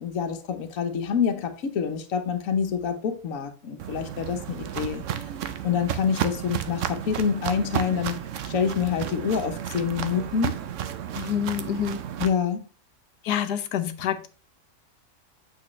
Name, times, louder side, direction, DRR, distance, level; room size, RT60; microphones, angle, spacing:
voice 1, 0.0-5.0 5.6-8.2 8.4-10.6 12.2-12.6, left 7 dB, 60° left, 1.3 m, -27 dB
Walk footsteps, 3.8-12.3, right 10 dB, 60° right, 0.9 m, -32 dB
voice 2, 11.1-12.0 13.2-14.3, left 9 dB, 85° left, 1.4 m, -27 dB
8.5 x 6.3 x 3.2 m
omnidirectional pair, 1.7 m